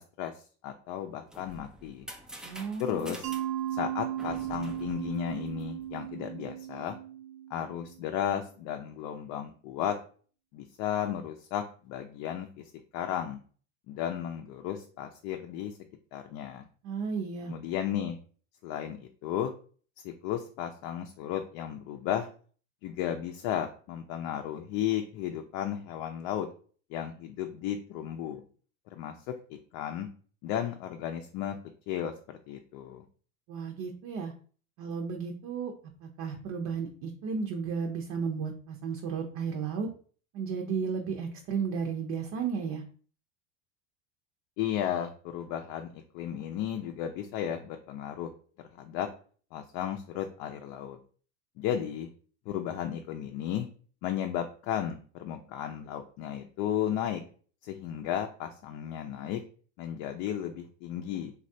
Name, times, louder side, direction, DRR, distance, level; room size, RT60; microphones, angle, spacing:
voice 1, 0.0-2.1 2.8-3.3 3.7-7.0 7.5-10.0 10.5-13.4 13.9-15.8 16.1-16.7 17.4-18.2 18.6-19.5 20.0-22.3 22.8-26.5 26.9-28.4 28.9-30.1 30.4-31.6 31.9-33.0 44.6-48.3 48.6-49.1 49.5-51.0 51.6-52.1 52.5-53.7 54.0-57.2 57.6-59.4 59.8-61.3, left 10 dB, 55° left, 4 dB, 0.5 m, -34 dB
sound 1, 1.0-6.0, right 1 dB, ahead, 0.3 m, -48 dB
voice 2, 2.4-3.1 16.8-17.5 33.5-34.3 34.8-35.7 36.0-39.9 40.3-42.8, right 5 dB, 50° right, 2 dB, 0.7 m, -33 dB
Mallet percussion, 3.2-8.0, right 11 dB, 85° right, 0.7 m, -36 dB
3.2 x 2.4 x 2.7 m, 0.42 s
supercardioid pair, 110°, 36 cm